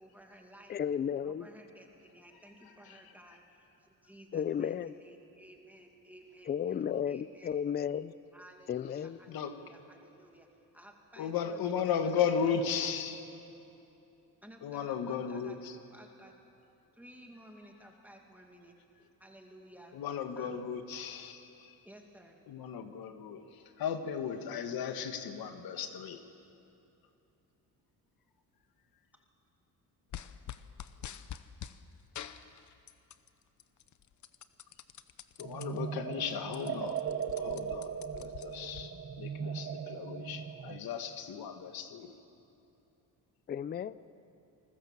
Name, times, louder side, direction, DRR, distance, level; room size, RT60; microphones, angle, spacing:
voice 1, 0.0-0.8 1.2-7.7 8.3-10.5 10.7-12.5 14.4-15.6 15.9-16.3 16.9-18.7 19.2-19.9 20.4-20.5 21.8-22.4 29.1-29.2, right 1 dB, 5° right, 1 dB, 2.0 m, -55 dB
voice 2, 0.7-1.5 4.3-4.9 6.5-8.1 8.7-9.2 43.5-43.9, left 8 dB, 30° left, 16 dB, 0.4 m, -33 dB
voice 3, 2.6-3.0 9.3-9.6 11.2-13.3 14.6-15.8 19.9-21.8 22.5-26.2 35.4-37.0 37.4-42.2, left 7 dB, 75° left, 7 dB, 1.9 m, -36 dB
sound 1, 30.1-31.8 32.1-33.3 33.6-35.7 36.1-36.2 36.4-38.8, left 10 dB, 55° left, 0.9 m, -46 dB
sound 2, 35.4-40.8, right 7 dB, 30° right, 0.9 m, -38 dB
28.0 x 20.5 x 7.4 m, 2.8 s
cardioid pair, 145°, 36 cm